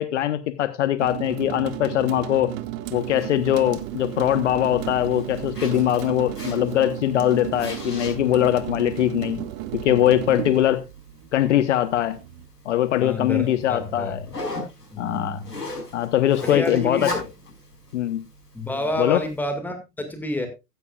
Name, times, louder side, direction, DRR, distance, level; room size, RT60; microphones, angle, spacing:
voice 1, 0.0-2.5 2.9-9.4 9.8-10.8 11.3-12.2 12.6-14.2 15.0-15.4 15.9-17.1 17.9-18.2 19.0-19.2, left 12 dB, 50° left, 1.1 m, -22 dB
sound 1, 1.0-12.4, right 14 dB, 30° right, 0.9 m, -33 dB
Zipper (clothing), 3.0-19.4, left 2 dB, 80° left, 5.7 m, -40 dB
voice 2, 13.0-14.2 14.9-15.5 16.4-17.2 18.5-20.5, left 1 dB, 5° left, 2.0 m, -29 dB
15.0 x 10.5 x 2.4 m
figure-of-eight pair, 105°, 47 cm